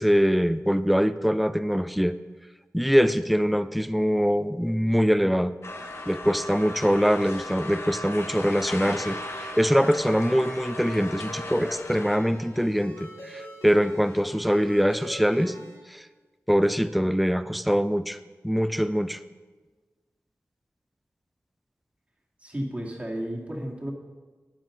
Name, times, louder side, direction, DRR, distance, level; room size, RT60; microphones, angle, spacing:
voice 1, 0.0-2.1 2.7-5.5 6.1-15.5 15.9-16.0 16.5-18.2 18.4-19.2, equal, ahead, 13 dB, 0.4 m, -23 dB
sound 1, 5.6-12.2, left 1 dB, 60° left, 1.1 m, -37 dB
Ringtone, 8.9-15.8, left 1 dB, 85° left, 2.9 m, -42 dB
voice 2, 22.4-23.9, equal, 25° right, -2 dB, 2.1 m, -33 dB
12.0 x 9.4 x 3.8 m, 1.3 s
wide cardioid pair, 85°, 5 cm